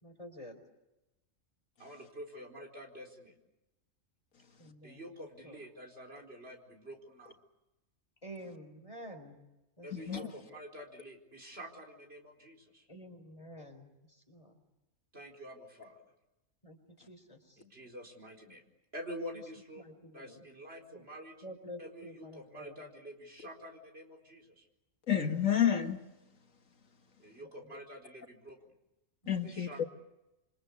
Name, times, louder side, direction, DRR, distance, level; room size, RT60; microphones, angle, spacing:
voice 1, 0.0-0.6 4.6-5.0 5.4-5.6 8.2-9.4 9.8-10.3 12.9-14.5 16.6-17.6 19.3-19.4 19.7-20.5 20.9-21.0 21.4-22.7 27.4-27.7 29.2-29.4, equal, 25° left, 4.1 m, -49 dB
voice 2, 1.8-3.3 4.8-7.4 9.8-12.9 15.1-16.0 17.6-18.6 18.9-19.9 20.1-21.4 21.8-24.7 27.2-28.7 29.4-29.9, equal, 50° right, 4.7 m, -48 dB
voice 3, 25.1-26.0 29.3-29.8, left 9 dB, 80° left, 2.1 m, -29 dB
28.0 x 25.5 x 8.2 m
omnidirectional pair, 1.4 m